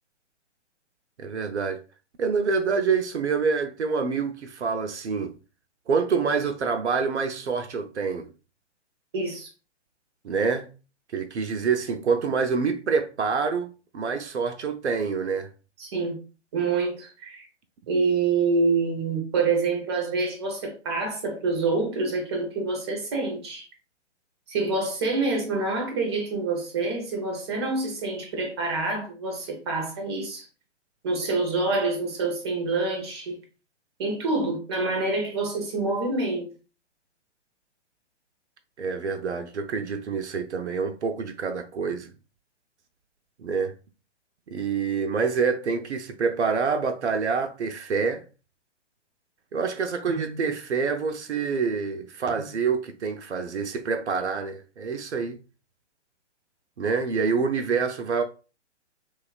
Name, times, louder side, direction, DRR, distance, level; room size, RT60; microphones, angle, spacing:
voice 1, 1.2-1.8 2.2-5.3 5.9-8.3 10.2-10.7 11.1-15.5 38.8-42.1 43.4-43.7 44.5-48.2 49.5-55.4 56.8-58.2, right 5 dB, 70° right, 0.5 m, -26 dB
voice 2, 9.1-9.5 15.8-16.2 16.5-17.5 17.9-23.7 24.5-30.5 31.0-33.4 34.0-36.5, right 3 dB, 25° right, 0.5 m, -26 dB
2.9 x 2.3 x 2.3 m
figure-of-eight pair, 125°, 36 cm